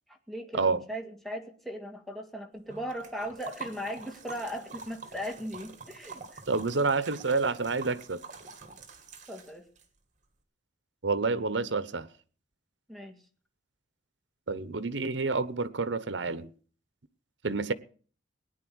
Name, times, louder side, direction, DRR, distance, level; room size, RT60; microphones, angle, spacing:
voice 1, 0.1-6.4 9.3-9.7 12.9-13.2, equal, ahead, 2.0 m, -38 dB
Liquid, 2.7-9.9, right 5 dB, 45° right, 2.6 m, -46 dB
voice 2, 6.5-8.2 11.0-12.1 14.5-16.5 17.4-17.7, right 4 dB, 70° right, 0.9 m, -28 dB
18.0 x 10.0 x 6.3 m
head